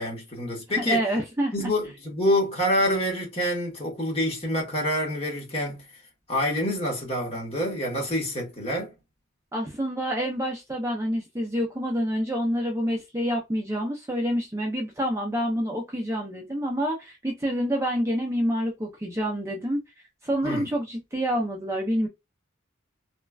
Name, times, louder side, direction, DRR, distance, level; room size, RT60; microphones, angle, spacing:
voice 1, 0.0-1.0 1.5-6.0 6.3-8.9 20.4-20.7, left 1 dB, 30° left, 1.1 m, -27 dB
voice 2, 0.7-1.5 9.5-19.8 20.2-22.1, equal, 15° right, 0.4 m, -27 dB
3.0 x 2.2 x 2.3 m
head